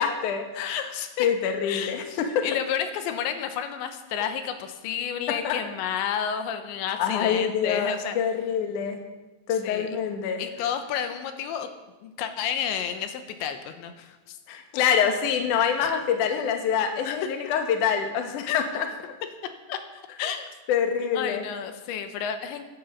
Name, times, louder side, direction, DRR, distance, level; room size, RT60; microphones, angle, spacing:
voice 1, 0.0-0.9 1.2-2.5 5.3-5.6 7.0-9.0 9.5-10.4 14.5-18.9 20.7-21.4, left 7 dB, 65° left, 5 dB, 2.0 m, -26 dB
voice 2, 0.6-1.3 1.7-8.2 9.5-10.0 10.4-11.7 12.0-14.4 15.8-16.0 17.0-17.2 18.5-18.6 19.7-20.5 21.1-22.6, left 8 dB, 85° left, 7 dB, 3.2 m, -31 dB
15.0 x 10.0 x 5.5 m, 1.1 s
omnidirectional pair, 5.2 m